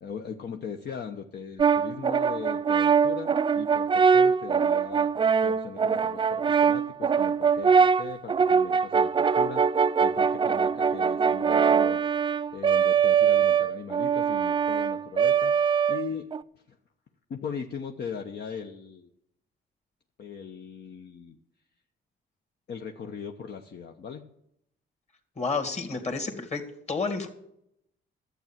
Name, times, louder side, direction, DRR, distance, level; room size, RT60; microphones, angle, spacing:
voice 1, 0.0-5.1 5.4-15.6 15.9-16.3 16.7-16.8 17.3-19.1 20.2-21.4 22.7-24.2, left 6 dB, 55° left, 3 dB, 0.9 m, -39 dB
Brass instrument, 1.6-16.4, right 6 dB, 25° right, 0.4 m, -23 dB
voice 2, 25.4-26.6 26.9-27.3, left 4 dB, 35° left, 4 dB, 2.2 m, -30 dB
12.0 x 8.2 x 7.3 m, 0.77 s
cardioid pair, 90°, 20 cm